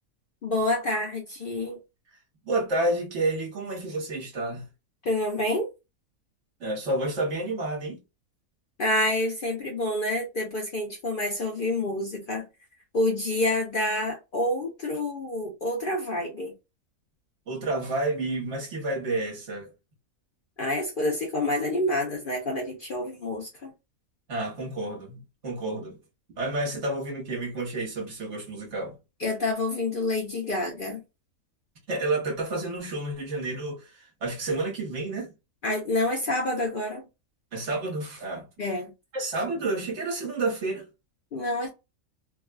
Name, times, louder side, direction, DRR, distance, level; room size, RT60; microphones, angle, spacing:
voice 1, 0.4-1.8 5.0-5.7 8.8-12.5 12.9-16.5 20.6-23.7 29.2-31.0 35.6-37.0 38.6-38.9 41.3-41.7, left 1 dB, 50° left, 0.7 m, -28 dB
voice 2, 2.4-4.7 6.6-8.0 17.5-19.7 24.3-26.0 26.4-29.0 31.9-35.3 37.5-38.5 39.1-40.8, right 2 dB, 60° right, 1.4 m, -30 dB
3.3 x 2.2 x 2.2 m
omnidirectional pair, 1.4 m